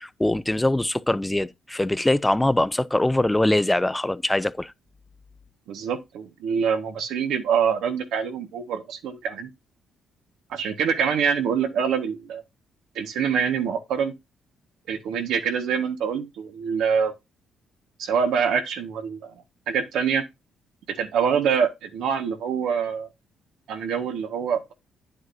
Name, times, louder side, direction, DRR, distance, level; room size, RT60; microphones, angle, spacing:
voice 1, 0.0-4.7, left 1 dB, 10° left, 0.5 m, -22 dB
voice 2, 5.7-9.5 10.5-12.4 12.9-14.1 14.9-17.1 18.0-19.3 19.7-20.2 20.9-23.1 23.7-24.7, right 7 dB, 80° right, 1.5 m, -25 dB
9.6 x 7.7 x 2.7 m
cardioid pair, 90°, 0 cm